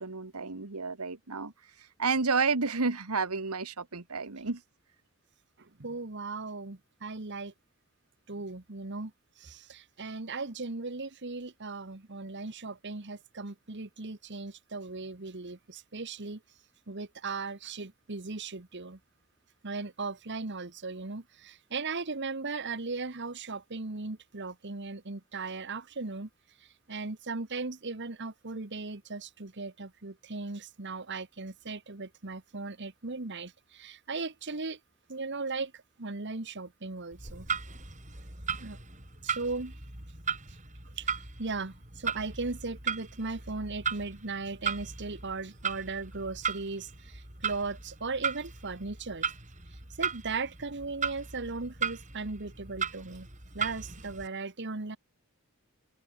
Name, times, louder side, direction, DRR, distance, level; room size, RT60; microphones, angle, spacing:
voice 1, 0.0-1.5 2.0-4.6, right 4 dB, 85° right, 1.6 m, -30 dB
voice 2, 5.6-7.5 8.3-9.1 9.4-16.4 16.9-19.0 19.6-26.3 26.9-34.8 35.1-37.5 38.6-38.8 39.2-39.8 41.0-41.1 41.4-49.3 50.0-53.3 53.5-55.0, right 3 dB, 55° right, 1.4 m, -37 dB
Clock, 37.1-54.3, right 6 dB, 35° right, 7.2 m, -37 dB
head